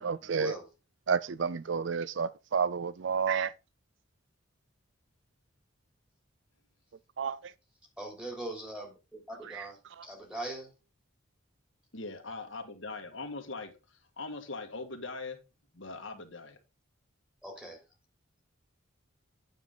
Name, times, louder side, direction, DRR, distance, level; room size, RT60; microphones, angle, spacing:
voice 1, 0.0-0.6 1.1-3.5 7.2-7.5 9.4-9.7 10.0-10.1, right 6 dB, 60° right, 0.4 m, -31 dB
voice 2, 8.0-10.7 17.4-17.8, right 1 dB, 5° right, 3.4 m, -41 dB
voice 3, 11.9-13.7 14.2-15.4 15.7-16.6, left 3 dB, 65° left, 1.7 m, -40 dB
9.4 x 7.2 x 3.8 m
head